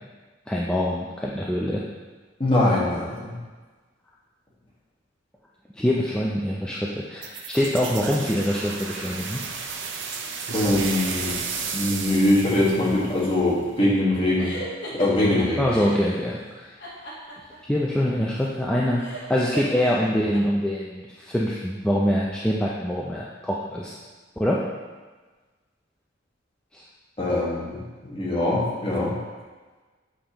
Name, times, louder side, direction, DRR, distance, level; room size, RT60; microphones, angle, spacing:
voice 1, 0.5-1.8 5.8-9.4 15.6-16.8 17.7-19.0 19.3-23.9 24.4-24.6 26.7-26.8, equal, 5° left, -4 dB, 0.4 m, -24 dB
voice 2, 2.4-3.3 10.5-11.3 11.7-14.5 14.9-15.7 27.2-27.8 28.0-29.1, left 1 dB, 30° left, -6 dB, 1.6 m, -22 dB
sound 1, 7.2-13.8, right 5 dB, 70° right, 0.6 m, -33 dB
sound 2, 14.4-16.1 16.8-20.4, right 1 dB, 65° left, 1.3 m, -37 dB
7.5 x 5.0 x 2.9 m, 1.3 s
head